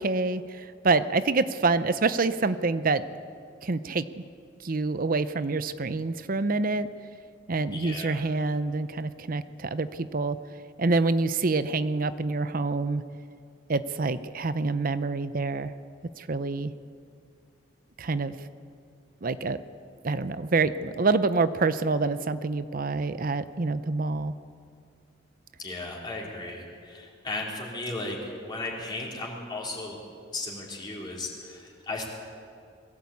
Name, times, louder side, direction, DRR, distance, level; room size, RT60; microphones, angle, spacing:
voice 1, 0.0-3.0 3.6-4.2 4.6-6.9 7.5-10.4 10.8-13.0 13.7-15.7 16.2-16.7 18.0-18.4 19.2-19.6 20.0-24.3, right 3 dB, 50° right, 13 dB, 0.7 m, -26 dB
voice 2, 7.7-8.2 25.6-30.0 30.3-32.1, left 2 dB, 25° left, -3 dB, 3.8 m, -35 dB
21.5 x 16.0 x 8.5 m, 2.3 s
head